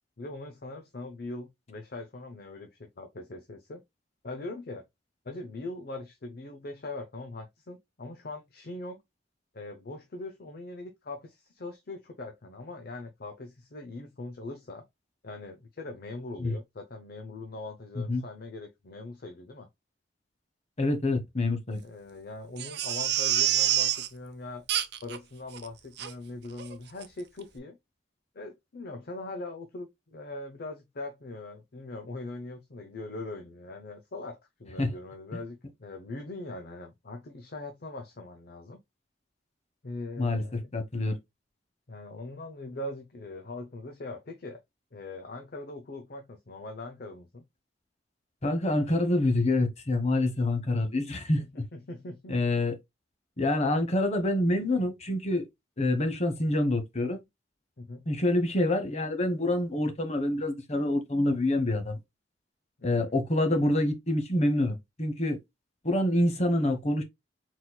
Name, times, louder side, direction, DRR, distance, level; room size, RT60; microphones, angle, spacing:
voice 1, 0.2-3.8 4.2-4.8 5.2-9.0 9.5-14.8 15.2-19.7 21.8-24.6 25.0-27.8 28.3-38.8 39.8-40.7 41.9-44.6 44.9-47.4 51.4-52.4 57.8-58.0 62.8-63.2, left 2 dB, 55° left, 0.7 m, -41 dB
voice 2, 20.8-21.8 34.8-34.9 40.2-40.4 40.7-41.2 48.4-51.4 52.3-52.7 53.4-55.5 55.8-57.2 58.1-62.0 62.8-65.4 65.8-67.0, left 1 dB, 40° left, 1.1 m, -26 dB
Crying sobbing, 22.6-24.1 24.7-25.2 25.5-25.6 26.0-26.1 26.6-26.7 27.0-27.1, right 11 dB, 65° right, 0.7 m, -27 dB
4.4 x 4.1 x 2.2 m
head